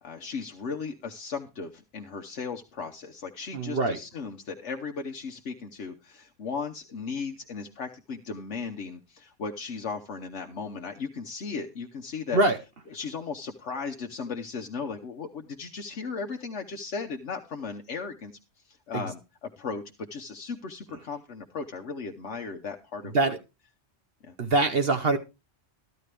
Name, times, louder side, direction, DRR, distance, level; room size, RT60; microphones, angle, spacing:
voice 1, 0.0-12.4 12.9-18.3 18.7-23.3 24.2-24.3, left 5 dB, 70° left, 4 dB, 1.3 m, -36 dB
voice 2, 3.5-4.0 12.3-12.6 18.9-19.1 23.1-23.4 24.4-25.2, right 2 dB, 55° right, 8 dB, 1.2 m, -23 dB
14.0 x 10.5 x 3.4 m, 0.28 s
omnidirectional pair, 1.2 m